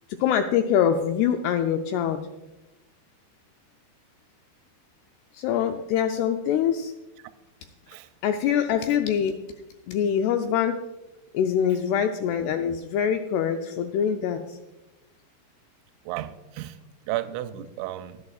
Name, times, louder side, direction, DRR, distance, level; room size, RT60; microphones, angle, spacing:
voice 1, 0.2-2.2 5.3-6.9 8.2-9.4 9.9-10.8 11.3-14.6, left 8 dB, 90° left, 6 dB, 2.3 m, -24 dB
voice 2, 16.1-18.3, right 14 dB, 85° right, 11 dB, 2.9 m, -34 dB
23.0 x 8.5 x 2.4 m, 1.0 s
omnidirectional pair, 5.3 m